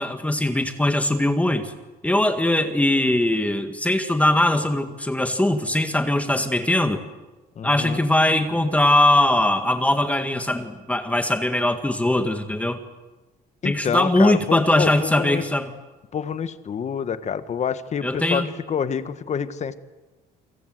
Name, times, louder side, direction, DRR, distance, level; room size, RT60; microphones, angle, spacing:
voice 1, 0.0-1.7 2.0-7.0 7.6-12.8 13.6-15.7 18.0-18.5, left 1 dB, 10° left, 7 dB, 1.9 m, -21 dB
voice 2, 7.6-8.0 13.6-15.4 16.1-19.8, left 7 dB, 40° left, 12 dB, 1.5 m, -27 dB
29.5 x 23.5 x 8.0 m, 1.2 s
cardioid pair, 110°, 17 cm